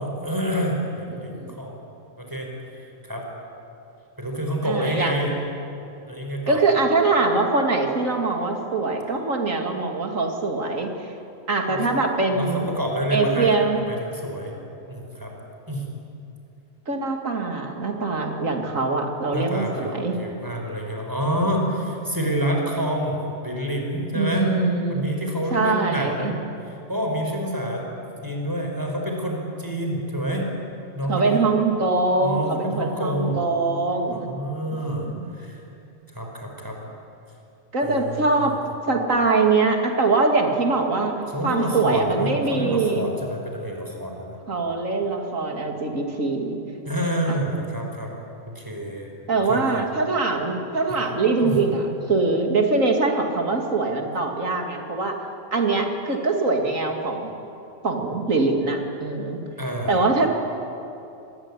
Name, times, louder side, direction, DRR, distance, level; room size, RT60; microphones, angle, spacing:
voice 1, 0.0-1.8 2.2-2.5 3.0-3.3 4.2-5.3 6.1-6.6 11.7-12.0 12.3-13.5 13.9-14.5 14.9-15.3 15.7-15.8 19.3-24.5 24.9-27.9 28.2-30.5 30.9-31.4 32.2-33.4 34.1-35.6 36.1-36.8 37.8-38.6 41.3-44.4 46.8-48.1 48.5-49.8 50.9-51.0 51.4-51.6 59.6-60.0, equal, 15° right, 1 dB, 5.1 m, -28 dB
voice 2, 1.1-1.6 4.6-5.3 6.5-11.1 11.5-12.7 13.1-13.8 16.9-20.2 24.1-25.0 25.5-26.3 31.1-34.3 34.7-35.3 37.7-38.6 38.9-41.2 41.4-43.1 44.5-46.6 47.3-47.4 49.3-51.8 52.1-55.2 55.5-57.3 57.8-59.4 59.9-60.3, right 3 dB, 80° right, 3 dB, 3.0 m, -23 dB
25.5 x 20.5 x 9.9 m, 2.8 s
omnidirectional pair, 1.4 m